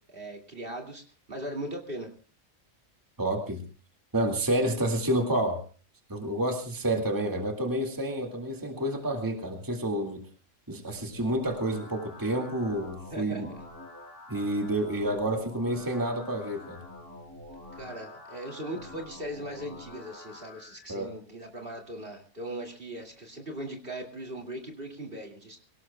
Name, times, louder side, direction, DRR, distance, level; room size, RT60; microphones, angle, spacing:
voice 1, 0.1-1.0 1.3-2.1 13.1-13.5 17.7-25.6, right 1 dB, 40° right, 2 dB, 2.6 m, -39 dB
voice 2, 3.2-3.6 4.1-5.6 6.1-10.3 10.7-13.5 14.3-16.8 20.9-21.1, right 1 dB, 15° right, 2 dB, 2.0 m, -29 dB
sound 1, 10.9-20.9, left 2 dB, 60° right, 7.0 m, -46 dB
24.5 x 18.0 x 2.2 m, 0.37 s
omnidirectional pair, 1.4 m